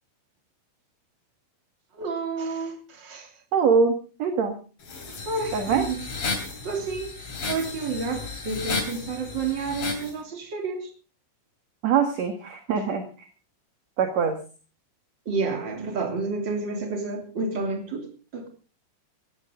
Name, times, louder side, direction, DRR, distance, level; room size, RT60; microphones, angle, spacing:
voice 1, 1.9-3.3 5.3-5.9 6.6-10.9 15.2-18.5, right 4 dB, 30° right, 3.0 m, -30 dB
voice 2, 3.5-4.6 5.5-5.9 11.8-13.3 14.0-14.4, right 6 dB, 50° right, 2.4 m, -23 dB
sound 1, 4.8-10.1, left 4 dB, 40° left, 4.1 m, -33 dB
18.5 x 15.0 x 3.7 m
omnidirectional pair, 4.7 m